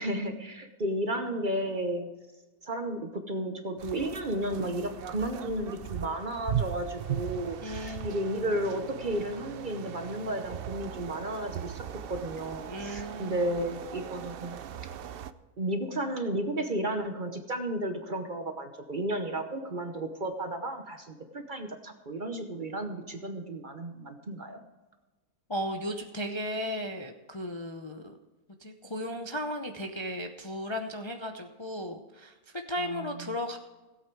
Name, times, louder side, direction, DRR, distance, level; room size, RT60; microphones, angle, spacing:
voice 1, 0.0-2.2 2.6-14.6 15.6-24.6 32.8-33.3, right 1 dB, 40° right, 6 dB, 1.0 m, -33 dB
sound 1, 3.8-15.3, right 9 dB, 65° right, 0.5 m, -38 dB
voice 2, 7.6-8.2 12.7-13.4 25.5-28.1 28.6-33.6, equal, 25° left, 4 dB, 0.6 m, -35 dB
16.5 x 8.5 x 4.6 m, 1.2 s
omnidirectional pair, 1.5 m